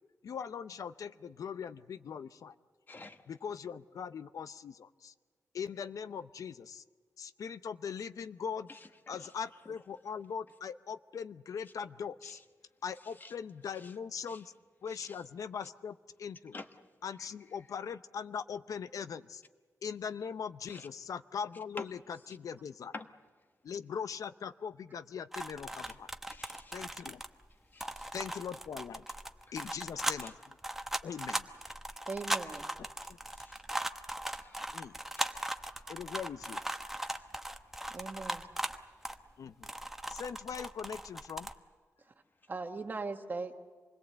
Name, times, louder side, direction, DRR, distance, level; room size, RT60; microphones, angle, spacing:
voice 1, 0.2-2.6 3.3-5.1 5.5-6.8 7.2-8.7 9.1-12.4 12.8-14.5 14.8-16.5 17.0-19.4 19.8-22.9 23.6-26.1 26.7-27.2 28.1-29.0 29.5-30.6 31.0-31.8 32.8-33.2 34.7-35.0 35.9-36.6 39.4-39.7 40.1-41.5, left 7 dB, 90° left, 13 dB, 0.6 m, -41 dB
voice 2, 2.9-3.2 8.7-8.8 9.1-9.3 12.2-12.4 13.2-13.3 13.8-13.9 14.3-14.4 14.9-15.2 16.5-16.7 17.2-17.3 20.7-20.9 21.8-21.9 22.9-23.1 26.3-26.8 27.7-28.1 29.6-29.7 30.2-30.3 33.0-33.6 34.3-34.6 35.1-35.3 37.0-37.3, left 3 dB, 35° left, 7 dB, 1.2 m, -49 dB
sound 1, 25.3-27.5 27.8-39.3 39.6-41.5, right 1 dB, 5° right, 0.9 m, -38 dB
voice 3, 32.1-32.7 37.9-38.5 42.5-43.5, right 3 dB, 35° right, 5 dB, 1.4 m, -39 dB
26.5 x 21.0 x 7.9 m, 1.5 s
wide cardioid pair, 140°, 6 cm